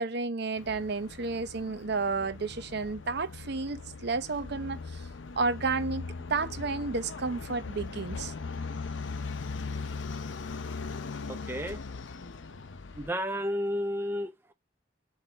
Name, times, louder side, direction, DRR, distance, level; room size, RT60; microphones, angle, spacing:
voice 1, 0.0-5.0 5.4-8.3, right 4 dB, 60° right, 0.8 m, -32 dB
sound 1, 0.6-13.1, left 4 dB, 75° left, 0.7 m, -39 dB
voice 2, 11.5-11.8 13.0-14.5, equal, 10° right, 0.6 m, -32 dB
7.4 x 3.3 x 4.3 m
head